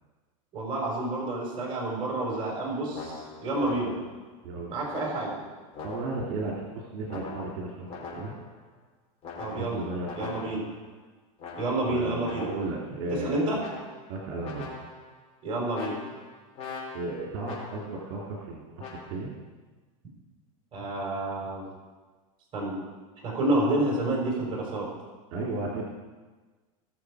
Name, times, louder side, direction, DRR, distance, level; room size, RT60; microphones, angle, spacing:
voice 1, 0.5-3.9 4.7-5.4 9.4-9.8 10.2-10.6 11.6-12.5 13.1-13.6 15.4-15.9 20.7-21.6 22.5-22.8 23.2-24.9, right 2 dB, 30° right, -2 dB, 4.6 m, -29 dB
sound 1, 2.9-4.2 4.9-6.4 7.1-8.6 9.2-10.8 11.4-12.8 13.6-14.2 14.4-15.1 15.7-18.0 18.8-19.1, left 4 dB, 35° left, 4.9 m, -42 dB
voice 2, 4.4-4.7 5.8-8.4 9.5-10.5 11.9-13.4 14.1-14.7 16.9-19.3 25.3-25.8, right 2 dB, 60° right, -3 dB, 2.9 m, -34 dB
20.0 x 6.7 x 4.9 m, 1.3 s
supercardioid pair, 135°, 18 cm